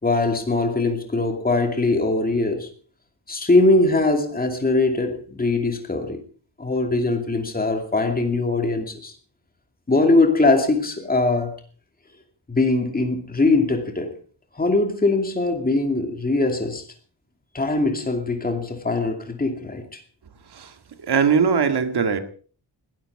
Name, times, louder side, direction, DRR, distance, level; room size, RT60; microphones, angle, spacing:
voice 1, 0.0-2.7 3.3-6.2 6.6-9.1 9.9-11.5 12.5-14.1 14.6-16.8 17.5-20.0, left 2 dB, 20° left, 2.5 m, -21 dB
voice 2, 21.0-22.2, right 6 dB, 70° right, 2.0 m, -20 dB
20.5 x 13.5 x 4.8 m
wide cardioid pair, 175°, 40 cm